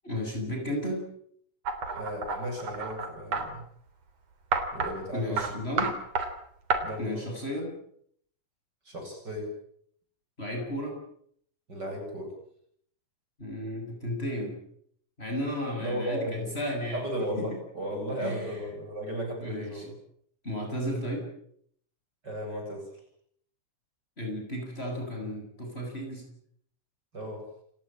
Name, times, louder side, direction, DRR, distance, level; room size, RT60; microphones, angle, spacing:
voice 1, 0.0-1.1 5.1-6.0 7.0-7.7 10.4-10.9 13.4-14.5 15.2-17.0 17.4-17.5 18.2-18.6 19.4-19.8 20.4-21.2 24.2-26.2, equal, 20° left, 2 dB, 7.9 m, -33 dB
sound 1, 1.7-3.5 4.5-4.9 5.4-5.5 5.8-6.3 6.7-6.8, right 4 dB, 60° right, 4.5 m, -29 dB
voice 2, 1.9-3.6 4.7-5.5 6.8-7.3 8.9-9.5 11.7-12.3 15.8-16.5 16.9-19.9 22.2-22.8 27.1-27.4, equal, 35° right, 3 dB, 8.7 m, -35 dB
30.0 x 18.0 x 9.0 m, 0.68 s
omnidirectional pair, 3.4 m